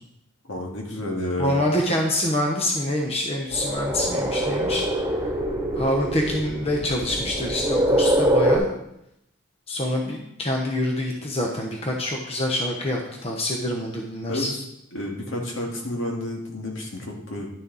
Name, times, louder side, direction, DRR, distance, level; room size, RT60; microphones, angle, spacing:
voice 1, 0.5-1.7 14.3-14.6 14.9-17.5, left 1 dB, 70° left, -1 dB, 2.1 m, -30 dB
voice 2, 1.4-4.8 5.7-8.7 9.7-14.5, left 1 dB, 30° left, 0 dB, 1.0 m, -26 dB
sound 1, 3.5-8.6, right 1 dB, 20° right, 2.0 m, -24 dB
11.0 x 6.7 x 4.0 m, 0.80 s
head